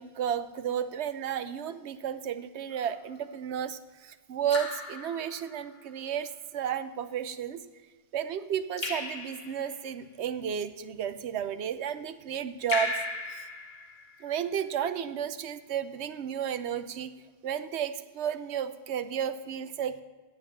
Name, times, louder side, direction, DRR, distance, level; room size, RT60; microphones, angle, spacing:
voice 1, 0.0-7.6 8.1-13.0 13.3-13.5 14.2-17.1 17.4-20.0, right 8 dB, 85° right, 12 dB, 1.0 m, -33 dB
Raindrop / Drip, 2.7-3.2 4.5-5.8 8.8-9.9 12.7-14.4, left 2 dB, 65° left, 1.4 m, -37 dB
9.3 x 7.7 x 7.3 m, 1.3 s
omnidirectional pair, 1.1 m